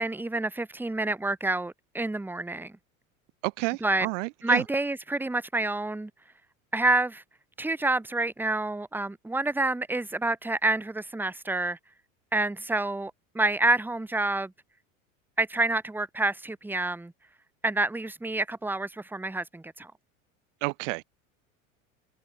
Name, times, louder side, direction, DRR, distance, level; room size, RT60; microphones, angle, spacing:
voice 1, 0.0-2.7 3.8-4.1 4.4-6.1 6.7-7.2 7.6-11.8 12.3-14.5 15.4-17.1 17.6-19.9, right 2 dB, 5° right, 1.1 m, -28 dB
voice 2, 3.4-4.6 20.6-21.0, right 26 dB, 65° right, 0.6 m, -30 dB
hypercardioid pair, 80°, 40 cm